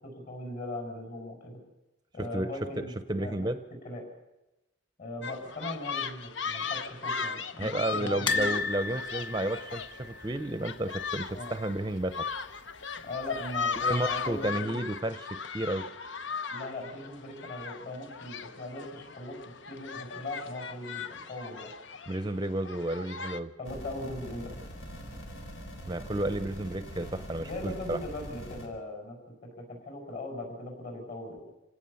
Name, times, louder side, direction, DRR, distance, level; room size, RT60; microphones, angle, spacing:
voice 1, 0.0-1.6 2.1-3.5 3.8-4.0 5.0-8.5 11.3-11.5 13.0-14.7 16.5-19.4 19.7-21.7 23.6-24.5 27.4-31.5, left 1 dB, 50° left, 2 dB, 6.7 m, -39 dB
voice 2, 3.1-3.6 7.6-12.3 13.8-15.8 22.1-23.5 25.9-28.0, right 1 dB, 20° right, 11 dB, 0.7 m, -32 dB
sound 1, 5.2-23.4, left 5 dB, 75° left, 1.0 m, -37 dB
sound 2, 8.3-11.3 11.6-11.8 12.0-12.1 13.4-13.9 14.4-14.5, left 3 dB, 25° left, 1.8 m, -34 dB
sound 3, 23.6-28.7, equal, 90° left, 4.3 m, -43 dB
26.5 x 17.0 x 7.1 m, 1.0 s
head